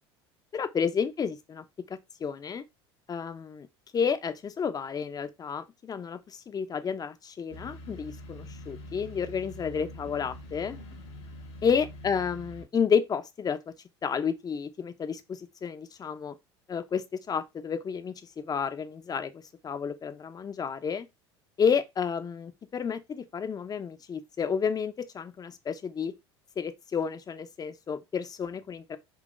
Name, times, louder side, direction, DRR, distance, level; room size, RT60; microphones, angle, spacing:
voice 1, 0.5-2.6 3.1-3.7 3.9-10.8 11.6-13.7 14.0-16.4 16.7-21.1 21.6-26.1 26.6-29.0, left 6 dB, 25° left, 0.6 m, -31 dB
sound 1, 7.5-12.6, left 1 dB, 75° left, 1.3 m, -44 dB
3.8 x 2.8 x 2.5 m
hypercardioid pair, 75°, 14 cm